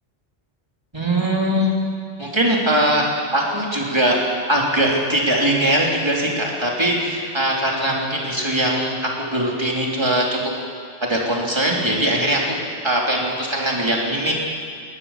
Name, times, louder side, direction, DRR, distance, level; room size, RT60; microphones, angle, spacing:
voice 1, 0.9-1.7 2.2-3.0 3.3-4.2 4.5-10.4 11.0-12.6 12.8-14.3, right 1 dB, 20° right, -2 dB, 3.4 m, -21 dB
19.5 x 18.5 x 7.4 m, 2.2 s
omnidirectional pair, 1.2 m